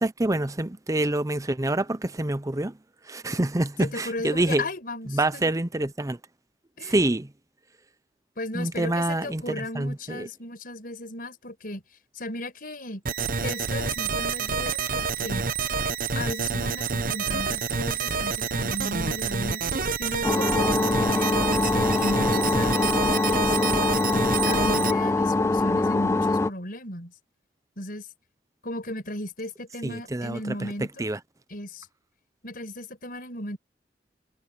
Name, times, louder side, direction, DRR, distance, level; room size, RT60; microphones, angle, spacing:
voice 1, 0.0-2.7 3.1-4.7 5.1-6.2 6.8-7.3 8.5-10.3 29.8-30.7 31.0-31.2, right 1 dB, 20° right, 0.7 m, -26 dB
voice 2, 3.8-5.5 6.8-6.9 8.4-11.8 12.1-13.0 13.4-15.5 16.2-19.6 20.0-23.8 24.4-27.1 27.8-28.1 28.6-31.0 31.5-31.9 32.4-33.6, left 1 dB, 55° left, 6.0 m, -36 dB
sound 1, 13.1-24.9, right 5 dB, 50° right, 1.1 m, -28 dB
sound 2, 20.2-26.5, left 2 dB, 15° left, 0.3 m, -23 dB
head